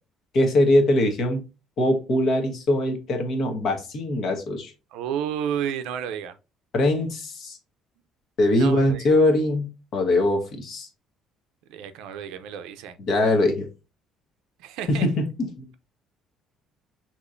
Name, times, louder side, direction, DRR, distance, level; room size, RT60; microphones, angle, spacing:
voice 1, 0.3-1.4 1.8-4.7 6.7-7.6 8.4-10.9 13.1-13.7 14.9-15.7, left 1 dB, 45° left, 1.2 m, -22 dB
voice 2, 4.9-6.3 8.5-9.1 11.7-13.0 14.6-15.1, right 8 dB, 90° right, 0.6 m, -31 dB
6.2 x 3.0 x 2.6 m
cardioid pair, 160°, 0 cm